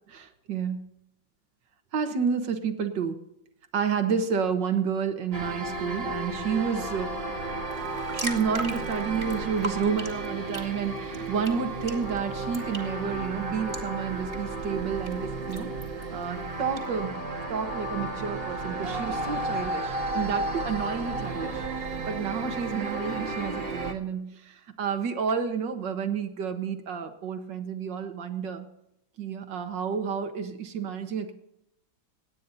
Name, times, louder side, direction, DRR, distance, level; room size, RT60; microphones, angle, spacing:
voice 1, 0.1-0.9 1.9-3.2 3.7-7.2 8.1-17.2 17.5-21.7 22.1-28.7 29.2-31.3, right 6 dB, 65° right, 7 dB, 2.0 m, -30 dB
sound 1, 5.3-23.9, right 2 dB, 35° right, 1.5 m, -33 dB
sound 2, 7.7-16.9, right 1 dB, 15° right, 2.1 m, -42 dB
27.0 x 9.8 x 2.8 m, 0.82 s
omnidirectional pair, 2.1 m